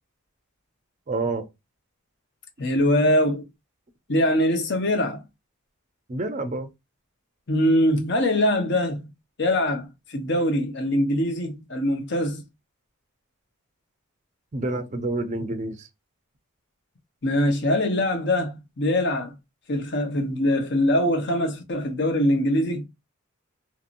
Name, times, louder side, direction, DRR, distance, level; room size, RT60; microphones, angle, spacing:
voice 1, 1.1-1.5 6.1-6.7 14.5-15.9, right 2 dB, 35° right, 0.5 m, -28 dB
voice 2, 2.6-3.5 4.1-5.2 7.5-9.1 9.4-12.5 17.2-19.3 19.7-22.9, left 1 dB, 50° left, 0.8 m, -23 dB
2.9 x 2.8 x 2.5 m
head